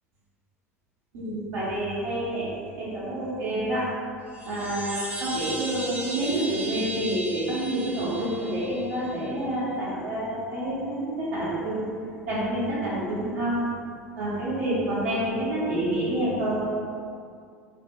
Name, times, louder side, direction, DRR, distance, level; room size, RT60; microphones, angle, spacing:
voice 1, 1.1-3.8 4.5-11.8 12.3-13.5 14.2-16.7, right 1 dB, 70° right, -11 dB, 0.7 m, -28 dB
sound 1, 4.3-9.3, right 2 dB, 20° right, 0.7 m, -36 dB
2.5 x 2.1 x 2.7 m, 2.3 s
figure-of-eight pair, 75°, 8 cm